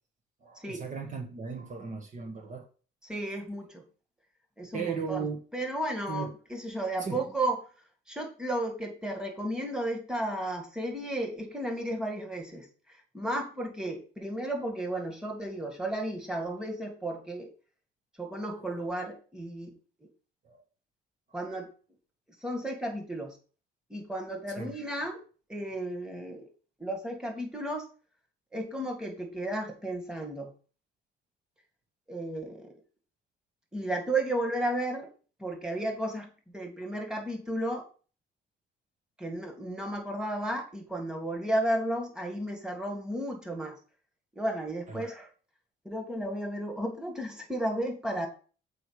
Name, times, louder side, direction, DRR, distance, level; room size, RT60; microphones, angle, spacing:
voice 1, 0.4-2.7 4.7-5.4 6.1-6.3 7.0-7.2 20.4-20.6 24.6-24.7 44.9-45.0, right 5 dB, 40° right, 1.5 m, -36 dB
voice 2, 3.0-3.8 4.6-5.3 5.5-7.6 8.1-17.5 18.2-19.7 21.3-21.7 22.4-23.4 23.9-25.2 25.5-26.5 26.8-27.9 28.5-30.5 32.1-32.7 33.7-35.1 35.4-37.9 39.2-43.8 44.4-45.3 45.8-48.3, right 1 dB, 5° right, 2.2 m, -33 dB
7.8 x 4.9 x 4.8 m
cardioid pair, 110°, 20 cm